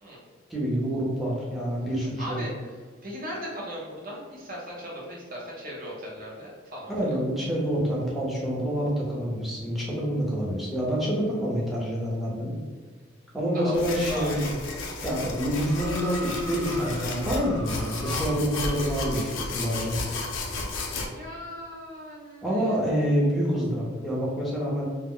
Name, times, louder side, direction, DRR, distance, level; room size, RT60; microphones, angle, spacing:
voice 1, 0.5-2.4 6.9-12.5 13.3-14.5 15.0-20.0 22.4-24.9, equal, ahead, -6 dB, 0.6 m, -27 dB
voice 2, 2.2-2.8 3.0-7.2 13.5-14.5 21.1-22.8, equal, 45° right, -3 dB, 0.7 m, -37 dB
sound 1, 13.7-21.1, left 3 dB, 80° left, 0.4 m, -33 dB
sound 2, 15.7-19.3 20.1-20.2, right 2 dB, 85° right, 0.4 m, -40 dB
2.1 x 2.0 x 3.6 m, 1.5 s
head